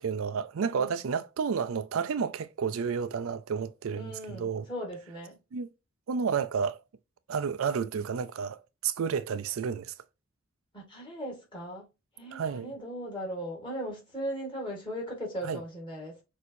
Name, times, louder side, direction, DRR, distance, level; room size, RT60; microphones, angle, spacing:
voice 1, 0.0-4.7 5.5-5.7 6.1-6.8 7.3-9.9 12.3-12.7 15.4-15.6, right 6 dB, 75° right, 0.4 m, -31 dB
voice 2, 0.6-1.0 3.9-5.4 10.7-11.9 12.1-16.2, equal, 20° left, 2.2 m, -38 dB
6.2 x 2.7 x 2.7 m
head